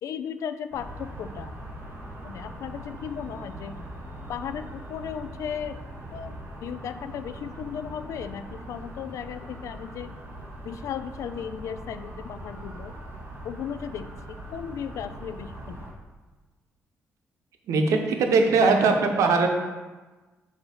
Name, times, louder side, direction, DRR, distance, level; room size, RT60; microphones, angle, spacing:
voice 1, 0.0-1.6 2.2-3.9 4.3-5.8 6.1-10.1 10.6-12.9 13.4-15.9, left 8 dB, 75° left, 10 dB, 0.4 m, -36 dB
sound 1, 0.7-15.9, right 1 dB, 45° right, 1.7 m, -41 dB
voice 2, 17.7-19.5, right 4 dB, 80° right, 4 dB, 0.8 m, -20 dB
6.9 x 2.8 x 5.8 m, 1.2 s
cardioid pair, 75°, 5 cm